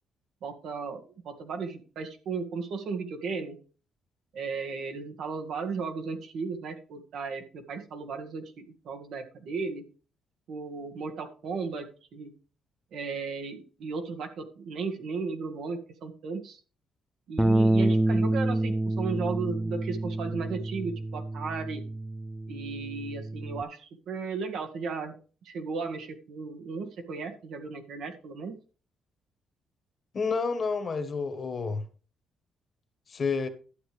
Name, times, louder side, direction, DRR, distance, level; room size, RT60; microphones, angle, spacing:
voice 1, 0.4-3.6 4.3-9.8 10.5-11.9 12.1-12.3 12.9-16.6 17.3-21.8 22.5-25.2 25.4-28.5, right 4 dB, 75° right, 1.7 m, -35 dB
Bass guitar, 17.4-23.6, right 1 dB, 5° right, 0.4 m, -28 dB
voice 2, 30.1-31.8 33.1-33.5, left 4 dB, 45° left, 1.4 m, -29 dB
11.5 x 7.7 x 3.3 m
cardioid pair, 90°, 0 cm